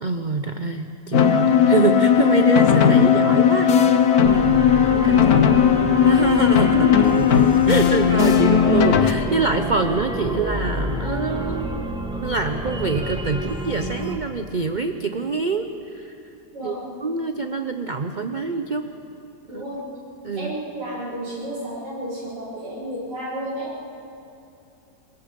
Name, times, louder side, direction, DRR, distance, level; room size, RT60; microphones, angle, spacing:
voice 1, 0.0-3.7 4.0-5.8 6.0-11.9 12.2-16.1 16.6-16.8 17.0-18.9 19.5-19.6 20.2-20.5, right 4 dB, 50° right, 7 dB, 0.5 m, -25 dB
sound 1, 1.1-9.1, left 8 dB, 60° left, 1.4 m, -16 dB
sound 2, 4.2-14.2, right 1 dB, 5° right, 1.7 m, -29 dB
voice 2, 6.7-7.4 7.7-7.8 16.5-16.9 19.5-19.8 20.4-23.8, equal, 75° right, -10 dB, 7.4 m, -31 dB
25.5 x 21.5 x 5.2 m, 2.7 s
omnidirectional pair, 1.8 m